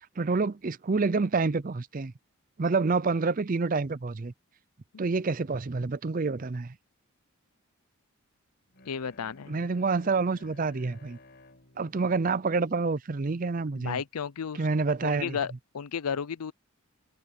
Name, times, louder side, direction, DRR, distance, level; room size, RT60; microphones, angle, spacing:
voice 1, 0.2-2.1 2.6-4.3 5.0-6.8 9.5-11.2 11.8-14.0 14.5-15.4, right 4 dB, 40° right, 0.5 m, -28 dB
Bowed string instrument, 8.7-13.6, left 2 dB, 50° left, 4.5 m, -56 dB
voice 2, 8.9-9.6 13.7-14.7 15.0-16.5, left 7 dB, 90° left, 0.5 m, -33 dB
head